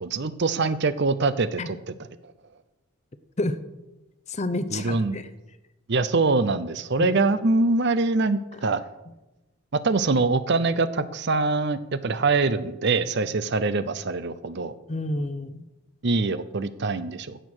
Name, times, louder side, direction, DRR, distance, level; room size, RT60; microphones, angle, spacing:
voice 1, 0.0-1.9 4.7-5.2 5.9-8.9 9.7-14.7 16.0-17.4, right 3 dB, 50° right, 14 dB, 0.6 m, -24 dB
voice 2, 4.3-5.2 7.0-7.1 14.9-15.6, left 2 dB, 30° left, 12 dB, 0.7 m, -29 dB
15.5 x 6.6 x 6.2 m, 1.0 s
head